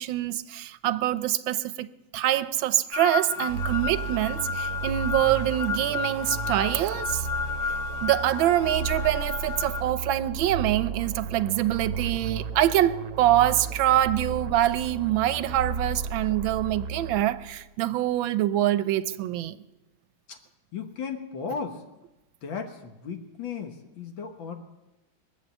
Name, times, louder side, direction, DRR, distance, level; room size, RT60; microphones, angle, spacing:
voice 1, 0.0-7.3 8.0-19.6, right 13 dB, 90° right, 1.4 m, -25 dB
sound 1, 2.9-9.8, left 5 dB, 55° left, 1.3 m, -32 dB
sound 2, 3.5-17.6, right 5 dB, 60° right, 0.9 m, -34 dB
voice 2, 20.7-21.8 22.4-24.5, left 5 dB, 80° left, 2.1 m, -35 dB
22.5 x 8.0 x 7.2 m
omnidirectional pair, 2.1 m